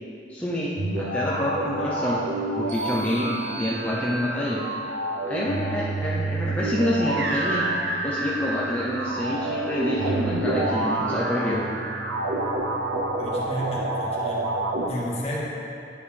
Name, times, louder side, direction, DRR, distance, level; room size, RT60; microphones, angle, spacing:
voice 1, 0.3-2.2 2.6-4.6 5.3-7.7 8.0-11.6, left 1 dB, 10° left, -8 dB, 0.6 m, -27 dB
sound 1, 0.8-14.9, right 2 dB, 80° right, 0.7 m, -28 dB
sound 2, 2.7-4.6, right 2 dB, 40° right, 1.3 m, -41 dB
voice 2, 13.2-14.5 14.9-15.5, equal, 35° left, -4 dB, 1.2 m, -32 dB
10.0 x 5.2 x 3.4 m, 2.6 s
head